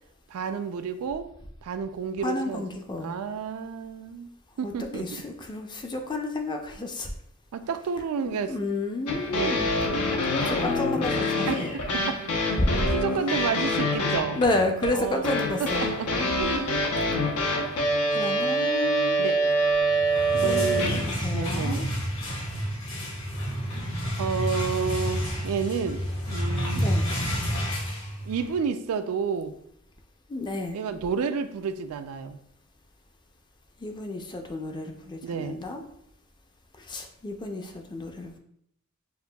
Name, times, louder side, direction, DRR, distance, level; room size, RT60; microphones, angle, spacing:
voice 1, 0.3-1.3 1.6-2.6 3.0-4.3 4.6-5.2 7.5-8.6 9.3-10.1 11.5-12.6 12.9-14.4 14.9-16.9 19.2-19.4 20.3-21.0 21.3-21.9 24.2-26.9 28.3-29.6 30.7-32.4 35.2-35.6, right 6 dB, 75° right, 10 dB, 0.3 m, -31 dB
voice 2, 2.2-3.1 4.6-7.1 8.3-9.7 10.5-11.7 12.6-13.0 14.3-15.9 18.1-19.3 20.4-21.8 26.7-27.1 30.3-30.8 33.8-35.8 36.8-38.4, left 2 dB, 20° left, 3 dB, 0.4 m, -30 dB
sound 1, 9.1-21.3, equal, 90° left, 0.8 m, -26 dB
sound 2, 19.9-28.6, equal, 60° left, 1.2 m, -30 dB
6.6 x 2.6 x 2.2 m, 0.72 s
head